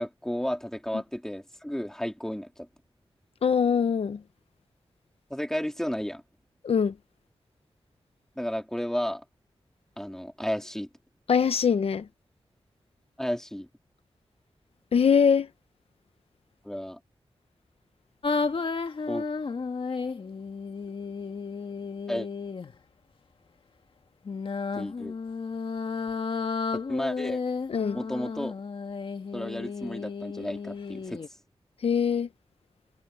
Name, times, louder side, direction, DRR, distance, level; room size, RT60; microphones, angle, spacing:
voice 1, 0.0-2.7 5.3-6.2 8.4-9.2 10.0-10.9 13.2-13.7 16.6-17.0 19.1-19.3 22.1-22.3 24.7-25.2 26.7-27.4 27.9-28.6 29.3-31.4, equal, 5° left, 3.3 m, -33 dB
voice 2, 3.4-4.2 6.6-7.0 11.3-12.1 14.9-15.5 27.7-28.0 31.8-32.3, left 6 dB, 75° left, 0.7 m, -23 dB
sound 1, 18.2-22.8 24.3-31.3, left 4 dB, 60° left, 1.8 m, -33 dB
wide cardioid pair, 105°, 10 cm